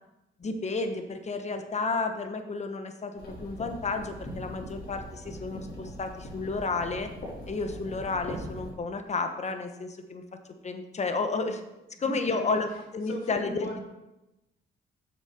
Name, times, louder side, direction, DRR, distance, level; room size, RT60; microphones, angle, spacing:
voice 1, 0.4-7.1 7.5-10.2 10.6-11.6 12.0-12.7 12.9-13.7, left 3 dB, 35° left, 7 dB, 1.1 m, -31 dB
sound 1, 3.2-8.7, equal, 55° left, 3.6 m, -41 dB
voice 2, 12.0-12.6 13.1-13.8, left 1 dB, 85° left, -2 dB, 2.8 m, -37 dB
7.3 x 6.7 x 5.1 m, 0.97 s
cardioid pair, 90°, 20 cm